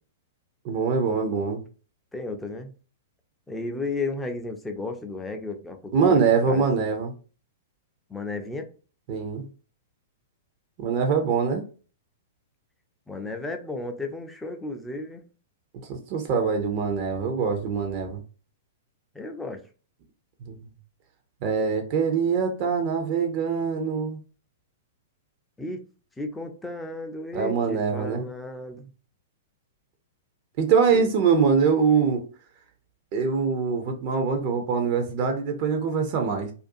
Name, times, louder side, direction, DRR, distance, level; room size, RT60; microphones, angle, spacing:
voice 1, 0.6-1.6 5.9-7.1 9.1-9.4 10.8-11.6 15.9-18.2 20.4-20.6 21.4-24.2 27.3-28.2 30.6-32.2 33.1-36.5, right 5 dB, 45° right, 4 dB, 0.6 m, -23 dB
voice 2, 2.1-2.7 3.5-6.6 8.1-8.7 13.1-15.2 19.1-19.6 25.6-25.8 26.2-28.9 30.9-31.1, left 2 dB, 10° left, 4 dB, 0.5 m, -34 dB
2.5 x 2.3 x 2.6 m, 0.36 s
figure-of-eight pair, 105°, 0 cm